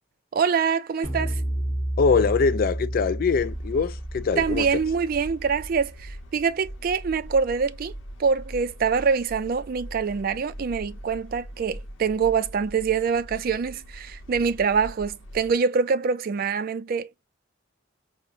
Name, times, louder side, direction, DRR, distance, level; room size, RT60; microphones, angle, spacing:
voice 1, 0.3-1.4 4.4-7.9 8.2-17.1, right 5 dB, 50° right, 0.4 m, -25 dB
sound 1, 1.0-6.4, right 1 dB, 15° left, 1.7 m, -31 dB
voice 2, 2.0-4.7, left 5 dB, 50° left, 0.3 m, -23 dB
sound 2, 3.4-15.6, equal, 80° left, 0.7 m, -41 dB
4.9 x 2.1 x 2.5 m
head